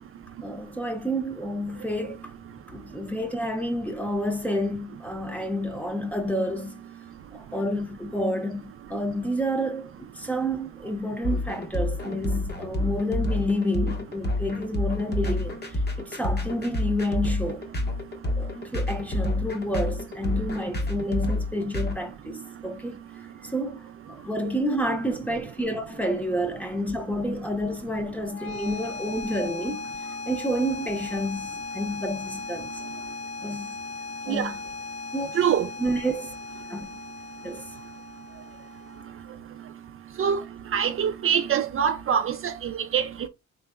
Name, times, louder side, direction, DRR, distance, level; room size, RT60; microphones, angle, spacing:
voice 1, 0.4-2.2 2.7-6.8 7.3-8.6 8.9-17.6 18.3-23.0 23.4-32.8 33.4-33.7 34.3-34.6 35.1-35.3 35.8-36.3 36.7-36.8 37.4-37.6, equal, 5° left, 0.9 m, -29 dB
sound 1, 11.2-21.9, left 1 dB, 35° left, 1.1 m, -28 dB
sound 2, 28.2-39.2, left 4 dB, 50° left, 0.7 m, -38 dB
voice 2, 35.3-35.7 40.2-40.4 40.7-43.3, right 8 dB, 45° right, 0.4 m, -24 dB
3.8 x 3.2 x 2.3 m
cardioid pair, 90°, 30 cm